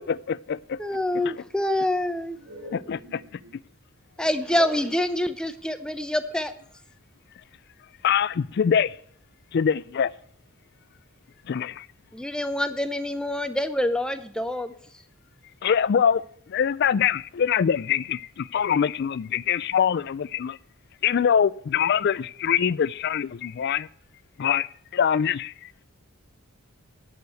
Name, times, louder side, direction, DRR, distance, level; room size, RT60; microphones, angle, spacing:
voice 1, 0.0-0.8 2.9-3.0 8.0-9.0 9.5-10.1 11.5-11.9 15.6-16.2 16.5-20.6 21.0-23.9 24.4-25.7, left 8 dB, 50° left, 0.3 m, -24 dB
voice 2, 0.8-2.4 4.2-6.5 12.1-14.7, left 1 dB, 5° left, 0.6 m, -26 dB
voice 3, 2.4-3.6 4.2-5.0, right 1 dB, 80° right, 3.2 m, -40 dB
9.7 x 6.6 x 7.7 m
head